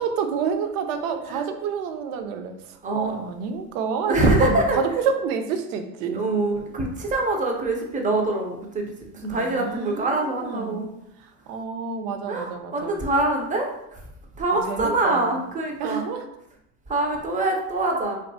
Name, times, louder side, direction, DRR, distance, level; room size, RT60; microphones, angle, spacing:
voice 1, 0.0-2.5 2.9-6.2 9.3-10.9 11.5-13.0 14.5-15.4 15.8-16.3, right 6 dB, 70° right, 7 dB, 0.5 m, -28 dB
voice 2, 2.8-3.1 4.1-4.8 6.1-10.9 12.3-13.7 14.4-16.0 16.9-18.2, right 2 dB, 20° right, 2 dB, 0.3 m, -24 dB
2.6 x 2.3 x 2.6 m, 0.81 s
hypercardioid pair, 85°, 46 cm